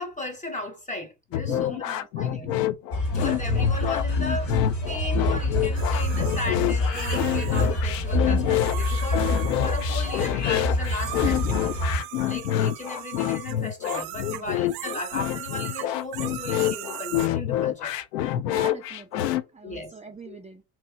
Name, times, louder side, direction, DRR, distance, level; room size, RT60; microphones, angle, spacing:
voice 1, 0.0-1.8 2.2-2.5 3.1-4.5 4.9-9.3 9.6-11.8 12.2-17.9 19.6-19.9 20.3-20.4, left 2 dB, 15° left, 1.0 m, -36 dB
sound 1, 1.3-19.4, left 12 dB, 80° left, 0.6 m, -27 dB
voice 2, 1.4-2.6 14.3-14.5 18.4-20.6, right 4 dB, 15° right, 0.6 m, -42 dB
sound 2, 2.9-12.0, left 1 dB, 55° left, 2.0 m, -27 dB
sound 3, 5.7-7.7 8.4-10.5 10.8-17.3, right 16 dB, 65° right, 0.5 m, -38 dB
3.0 x 3.0 x 4.5 m
hypercardioid pair, 80°, 49 cm